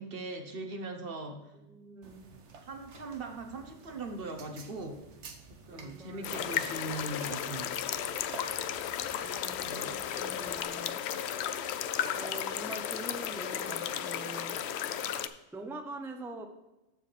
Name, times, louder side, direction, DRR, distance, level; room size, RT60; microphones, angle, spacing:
voice 1, 0.0-1.5 2.0-2.1 2.6-5.0 5.5-7.8 9.6-10.0, right 2 dB, 55° right, 5 dB, 1.2 m, -40 dB
voice 2, 1.7-2.2 5.7-6.6 9.2-11.0 12.1-14.6 15.2-16.4, right 2 dB, ahead, 4 dB, 0.7 m, -45 dB
sound 1, 2.0-10.6, right 4 dB, 90° right, 1.3 m, -52 dB
sound 2, 6.2-15.3, left 9 dB, 70° left, 0.8 m, -34 dB
14.0 x 4.8 x 3.3 m, 1.0 s
omnidirectional pair, 1.2 m